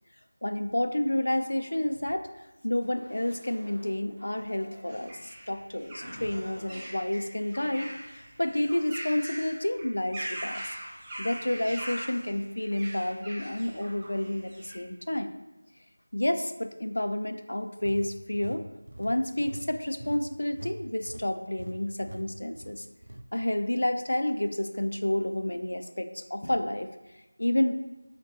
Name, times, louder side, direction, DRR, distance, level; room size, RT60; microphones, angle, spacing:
voice 1, 0.4-2.2 2.6-5.1 5.5-7.9 8.4-10.6 11.2-15.4 16.1-18.6 19.0-22.8 23.3-26.9 27.4-27.7, left 1 dB, 80° left, 8 dB, 0.3 m, -29 dB
sound 1, 1.3-2.2 2.8-5.2 5.8-6.9, equal, 50° right, 1.1 m, -48 dB
sound 2, 4.9-14.8, right 1 dB, 10° right, 0.4 m, -41 dB
sound 3, 17.8-20.8 21.0-21.3 21.6-21.7 22.0-22.2 22.6-23.2, right 1 dB, 75° right, 0.4 m, -43 dB
5.9 x 2.2 x 2.8 m, 1.0 s
figure-of-eight pair, 175°, 0 cm